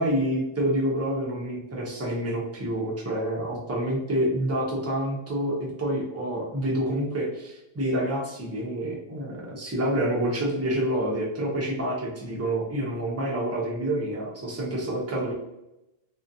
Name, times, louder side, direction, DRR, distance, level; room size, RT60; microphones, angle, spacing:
voice 1, 0.0-15.3, right 1 dB, 20° right, -3 dB, 0.5 m, -28 dB
2.4 x 2.2 x 2.6 m, 0.91 s
omnidirectional pair, 1.1 m